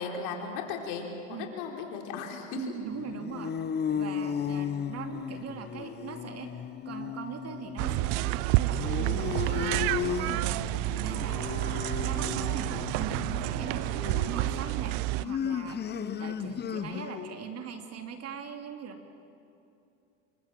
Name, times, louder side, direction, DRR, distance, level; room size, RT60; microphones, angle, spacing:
voice 1, 0.0-2.6, left 5 dB, 65° left, 2 dB, 4.4 m, -36 dB
voice 2, 2.5-3.6 3.9-15.0 15.2-15.8 16.2-19.0, right 6 dB, 40° right, 6 dB, 2.8 m, -41 dB
sound 1, 2.9-17.4, left 8 dB, 25° left, 0.9 m, -35 dB
sound 2, 7.8-15.3, right 20 dB, 60° right, 0.6 m, -29 dB
26.5 x 23.5 x 7.5 m, 2.7 s
supercardioid pair, 100°, 38 cm